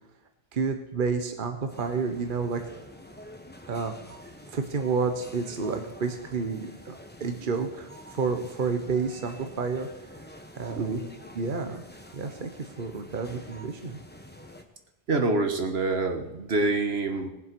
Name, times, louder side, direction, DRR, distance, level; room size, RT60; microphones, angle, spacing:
voice 1, 0.5-2.6 3.7-3.9 4.5-6.9 7.2-9.9 10.5-10.9 11.3-11.8 12.1-12.5 12.8-14.0, right 5 dB, 55° right, 6 dB, 1.3 m, -30 dB
sound 1, 1.7-14.6, left 1 dB, 10° left, 1.2 m, -48 dB
voice 2, 10.7-11.0 15.1-17.3, right 3 dB, 80° right, 5 dB, 1.7 m, -26 dB
19.5 x 7.5 x 6.1 m, 0.94 s
omnidirectional pair, 1.0 m